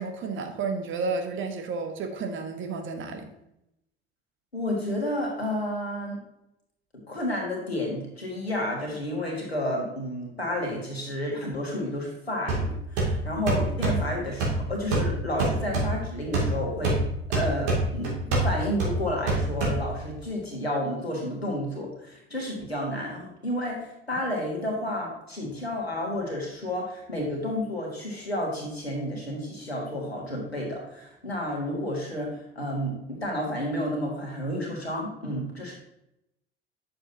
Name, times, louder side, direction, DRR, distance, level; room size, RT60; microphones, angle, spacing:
voice 1, 0.0-3.3, right 4 dB, 40° right, 5 dB, 1.2 m, -31 dB
voice 2, 4.5-6.2 7.1-17.0 17.3-35.7, left 1 dB, 90° left, -1 dB, 1.7 m, -31 dB
sound 1, 12.5-20.2, right 2 dB, 60° right, 2.5 m, -27 dB
8.8 x 6.7 x 2.8 m, 0.83 s
figure-of-eight pair, 60°, 30 cm